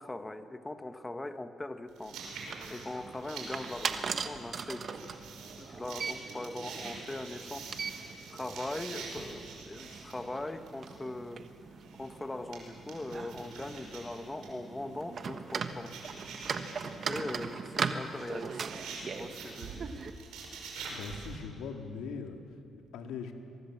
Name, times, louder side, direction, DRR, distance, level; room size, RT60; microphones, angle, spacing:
voice 1, 0.0-2.4 2.7-5.1 5.6-7.7 8.3-11.5 12.0-16.0 16.8-19.9, left 2 dB, 15° left, 9 dB, 1.4 m, -41 dB
sound 1, 1.9-21.4, right 4 dB, 90° right, 5.4 m, -46 dB
sound 2, 2.1-20.1, right 5 dB, 50° right, 1.3 m, -40 dB
voice 2, 20.9-23.3, left 5 dB, 90° left, 4 dB, 2.1 m, -41 dB
23.0 x 23.0 x 7.3 m, 2.7 s
cardioid pair, 90°, 0 cm